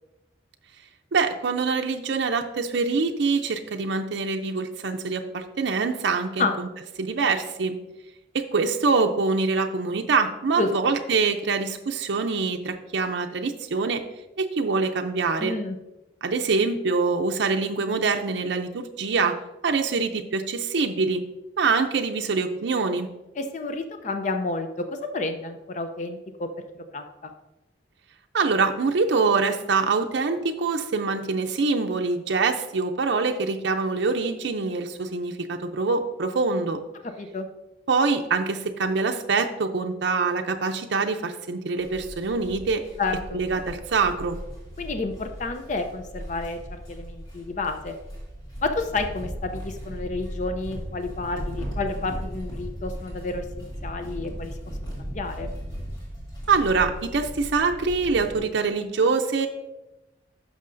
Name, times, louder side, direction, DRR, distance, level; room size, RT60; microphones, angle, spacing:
voice 1, 1.1-6.7 7.0-7.8 8.3-14.0 14.4-15.6 16.2-19.4 19.6-21.2 21.6-23.1 28.3-36.8 37.9-42.8 43.3-44.4 56.5-59.5, right 4 dB, 75° right, 4 dB, 0.5 m, -24 dB
voice 2, 15.4-15.8 23.4-26.5 26.9-27.3 37.0-37.5 43.0-43.4 44.8-46.6 46.9-47.9 48.6-54.7 55.0-55.5, left 3 dB, 40° left, 7 dB, 0.5 m, -30 dB
sound 1, 41.8-58.4, equal, 25° left, 2.6 m, -37 dB
11.0 x 6.3 x 2.6 m, 0.99 s
head